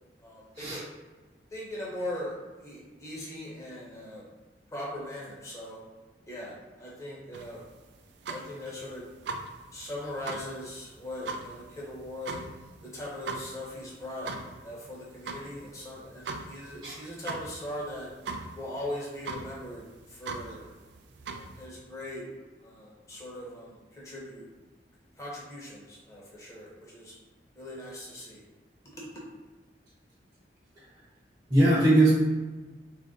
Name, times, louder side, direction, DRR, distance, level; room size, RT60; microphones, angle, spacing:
voice 1, 0.2-0.9 1.5-4.2 4.7-5.8 6.2-7.6 8.3-9.1 9.7-12.4 12.8-14.3 14.6-18.1 18.5-20.7 21.3-22.2 22.6-24.5 25.2-27.1 27.5-28.4 28.8-29.3, left 1 dB, 20° left, -6 dB, 1.0 m, -40 dB
sound 1, 7.3-21.7, right 3 dB, 80° right, 0.4 m, -41 dB
voice 2, 31.5-32.1, right 1 dB, 25° right, -10 dB, 0.7 m, -20 dB
3.3 x 2.6 x 3.7 m, 1.3 s
head